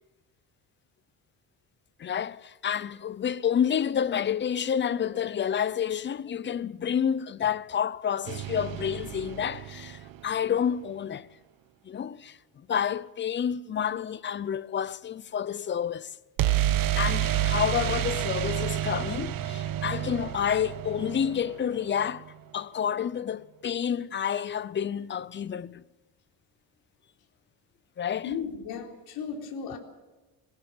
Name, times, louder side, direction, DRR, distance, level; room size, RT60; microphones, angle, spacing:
voice 1, 2.0-11.3 11.8-12.4 12.7-16.1 17.0-22.3 22.5-25.8 28.0-28.3, left 8 dB, 30° left, 0.7 m, -29 dB
sound 1, 8.3-10.3 16.4-22.2, right 12 dB, 60° right, 1.2 m, -29 dB
voice 2, 28.2-29.8, left 6 dB, 70° left, 4.1 m, -35 dB
22.0 x 19.5 x 7.8 m
cardioid pair, 155°, 38 cm